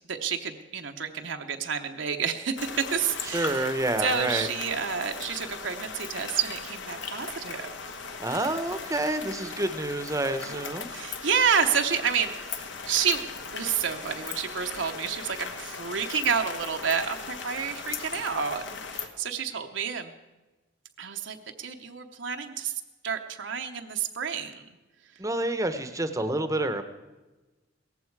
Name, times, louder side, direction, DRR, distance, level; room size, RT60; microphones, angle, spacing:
voice 1, 0.1-3.7 4.0-7.7 10.5-10.6 10.9-20.1 21.0-24.6, right 7 dB, 65° right, 5 dB, 0.9 m, -29 dB
sound 1, 2.6-19.1, left 5 dB, 70° left, 1.3 m, -38 dB
voice 2, 3.3-4.5 8.2-10.9 25.2-26.8, right 2 dB, 15° right, 9 dB, 0.9 m, -28 dB
17.5 x 14.5 x 4.7 m, 1.1 s
head